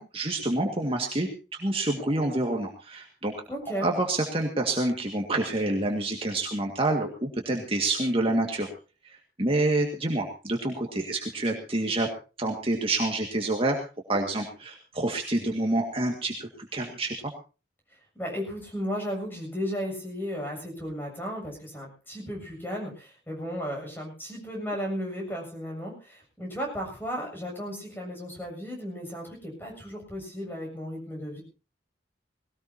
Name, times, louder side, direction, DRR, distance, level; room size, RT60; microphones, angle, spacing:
voice 1, 0.0-3.3 3.8-8.7 9.0-12.1 12.4-13.8 14.1-17.1, right 2 dB, 30° right, 1 dB, 1.9 m, -27 dB
voice 2, 3.5-3.9 18.2-31.4, equal, 10° left, 0 dB, 7.3 m, -35 dB
20.5 x 18.0 x 2.9 m, 0.33 s
head